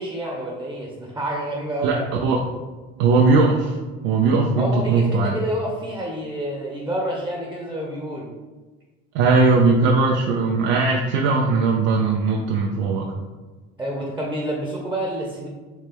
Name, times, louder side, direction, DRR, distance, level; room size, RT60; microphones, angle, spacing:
voice 1, 0.0-2.0 4.6-8.3 13.8-15.5, right 1 dB, 5° right, -1 dB, 1.0 m, -28 dB
voice 2, 1.8-2.4 3.0-3.8 4.0-5.4 9.1-13.1, right 4 dB, 70° right, 0 dB, 0.6 m, -19 dB
4.4 x 3.3 x 3.4 m, 1.3 s
hypercardioid pair, 70°, 30 cm